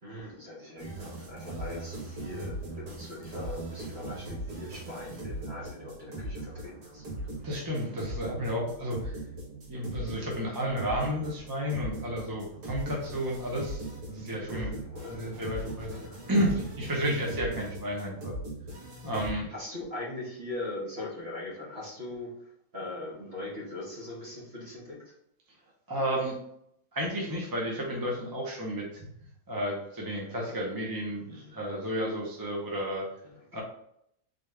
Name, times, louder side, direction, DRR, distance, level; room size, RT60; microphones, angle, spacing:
voice 1, 0.0-7.1 14.5-15.2 15.9-16.2 19.5-25.2 31.3-32.0 33.2-33.6, left 2 dB, 45° right, -4 dB, 1.5 m, -41 dB
sound 1, 0.8-19.3, right 1 dB, 85° right, 1.7 m, -40 dB
voice 2, 7.4-9.2 9.7-14.7 15.1-16.0 16.3-18.3 19.0-19.5 25.9-26.3 26.9-29.1 29.5-33.1 33.5-33.6, equal, 20° right, -2 dB, 0.6 m, -32 dB
3.9 x 3.6 x 3.3 m, 0.73 s
omnidirectional pair, 1.5 m